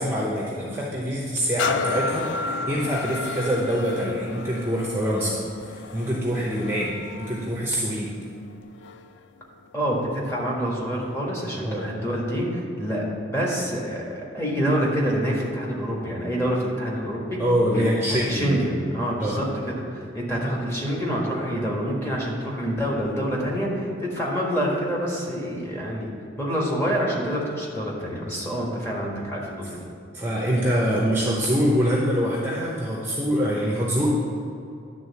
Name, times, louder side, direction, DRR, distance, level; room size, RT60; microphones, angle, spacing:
voice 1, 0.0-5.4 5.7-8.2 11.6-11.9 17.4-18.6 19.2-19.4 30.1-34.1, equal, 10° right, -4 dB, 0.8 m, -25 dB
sound 1, 1.6-9.2 9.8-9.9, left 4 dB, 65° left, 0.4 m, -32 dB
voice 2, 9.7-17.4 17.7-26.1 26.4-29.9, equal, 15° left, -3 dB, 1.5 m, -27 dB
10.5 x 3.7 x 7.1 m, 2.5 s
head